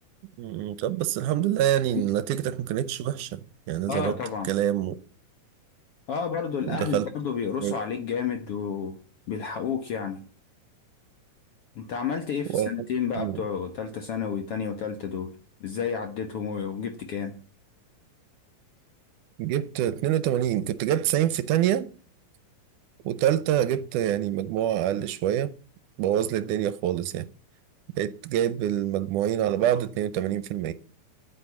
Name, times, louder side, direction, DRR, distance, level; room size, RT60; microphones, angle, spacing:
voice 1, 0.4-3.4 3.7-4.2 4.5-5.0 6.7-7.1 7.6-7.7 12.5-12.7 13.2-13.4 19.4-21.9 23.1-25.5 26.0-27.3 28.0-30.7, right 11 dB, 75° right, 2.0 m, -26 dB
voice 2, 3.9-4.5 6.1-8.9 9.3-10.2 11.7-15.3 15.6-17.3, left 6 dB, 60° left, 1.5 m, -31 dB
10.5 x 9.1 x 7.1 m
omnidirectional pair, 3.8 m